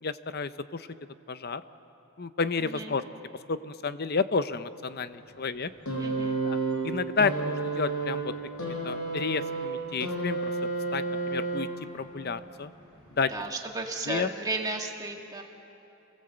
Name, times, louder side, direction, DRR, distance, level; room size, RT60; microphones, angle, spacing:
voice 1, 0.0-0.9 1.3-1.6 2.2-3.0 3.5-5.7 6.4-6.6 6.8-8.3 8.6-11.7 11.9-12.7 13.2-13.3 14.1-14.3, left 4 dB, 45° left, 12 dB, 0.7 m, -31 dB
voice 2, 2.6-2.9 6.0-6.4 13.3-15.4, right 2 dB, 15° right, 1 dB, 1.9 m, -34 dB
sound 1, 5.8-12.0 13.1-13.2, right 3 dB, 85° left, 6.1 m, -31 dB
28.5 x 18.0 x 8.0 m, 2.9 s
head